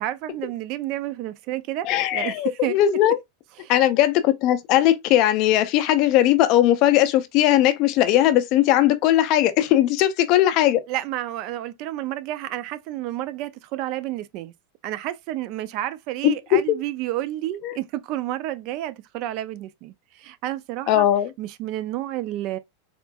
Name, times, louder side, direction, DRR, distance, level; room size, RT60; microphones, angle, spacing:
voice 1, 0.0-2.8 3.6-3.7 10.9-14.5 14.8-21.1 21.4-22.6, right 14 dB, 40° right, 0.3 m, -30 dB
voice 2, 1.8-3.2 3.7-10.8 16.2-16.8 17.6-17.7 20.9-21.3, left 13 dB, 40° left, 0.4 m, -19 dB
3.6 x 2.4 x 2.3 m
supercardioid pair, 155°, 0 cm